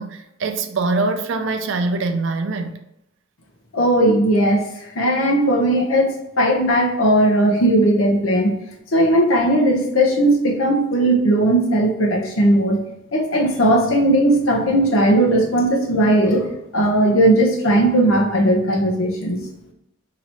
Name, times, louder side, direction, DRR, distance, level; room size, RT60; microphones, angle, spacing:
voice 1, 0.0-2.8, right 3 dB, 65° right, 0.4 m, -23 dB
voice 2, 3.7-8.5 8.9-12.8 13.1-19.4, right 1 dB, 85° left, 0.8 m, -17 dB
2.9 x 2.8 x 4.3 m
head